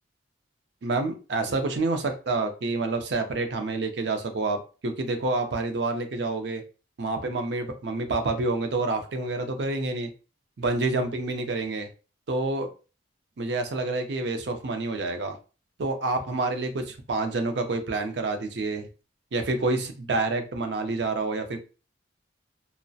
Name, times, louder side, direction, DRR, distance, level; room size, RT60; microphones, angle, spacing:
voice 1, 0.8-6.6 7.0-10.1 10.6-11.9 12.3-12.7 13.4-15.4 15.8-18.9 19.3-21.6, right 3 dB, 60° right, 6 dB, 0.5 m, -28 dB
2.6 x 2.0 x 2.3 m, 0.33 s
head